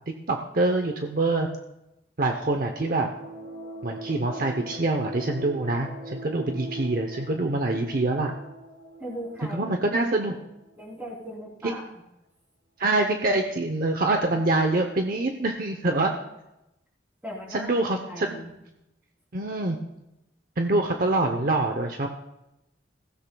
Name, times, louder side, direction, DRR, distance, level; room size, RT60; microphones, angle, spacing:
voice 1, 0.1-1.5 2.2-3.1 3.8-8.3 9.5-10.4 11.6-11.7 12.8-16.1 17.5-18.4 19.3-19.8 20.6-22.1, right 2 dB, 50° right, 4 dB, 0.7 m, -25 dB
sound 1, 2.4-11.0, right 1 dB, 85° right, 3.2 m, -41 dB
voice 2, 9.0-9.8 10.8-12.0 17.2-18.5, equal, 10° right, -3 dB, 3.3 m, -38 dB
22.0 x 15.5 x 2.3 m, 0.91 s
head